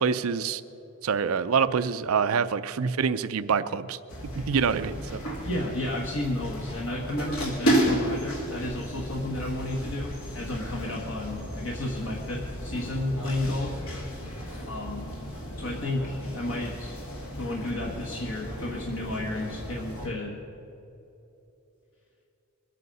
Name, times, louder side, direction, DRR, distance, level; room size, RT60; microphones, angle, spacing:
voice 1, 0.0-0.6 1.0-4.0 4.2-5.2, right 6 dB, 90° right, 12 dB, 0.5 m, -26 dB
sound 1, 4.1-20.1, right 1 dB, 85° left, 2.5 m, -33 dB
voice 2, 5.4-13.8 14.6-15.1 15.5-17.0 17.4-20.4, left 1 dB, 65° left, -2 dB, 1.5 m, -32 dB
22.5 x 8.3 x 5.4 m, 2.9 s
head